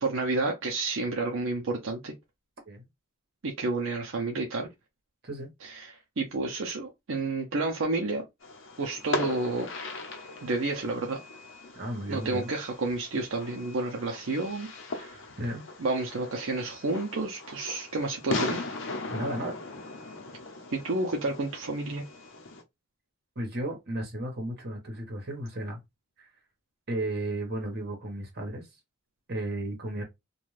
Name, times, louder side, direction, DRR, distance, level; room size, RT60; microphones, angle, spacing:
voice 1, 0.0-2.1 3.4-4.7 5.6-8.2 8.8-9.7 10.4-11.2 12.1-15.2 15.8-18.6 20.7-22.0, right 2 dB, 70° right, 0.5 m, -30 dB
Fireworks, 8.4-22.6, left 3 dB, 65° left, 0.7 m, -38 dB
voice 2, 11.7-12.5 15.4-15.6 19.1-19.6 23.3-25.8 26.2-26.3 26.9-28.7 29.3-30.0, right 1 dB, 50° right, 1.1 m, -34 dB
2.5 x 2.3 x 3.1 m
head